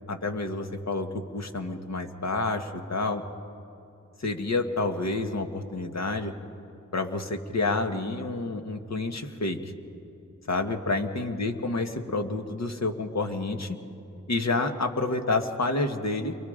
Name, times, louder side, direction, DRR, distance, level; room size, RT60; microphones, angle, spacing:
voice 1, 0.1-3.2 4.2-6.3 6.9-9.6 10.5-13.8 14.3-16.5, left 3 dB, 55° left, 5 dB, 1.7 m, -29 dB
29.0 x 23.5 x 5.1 m, 2.9 s
cardioid pair, 65°, 32 cm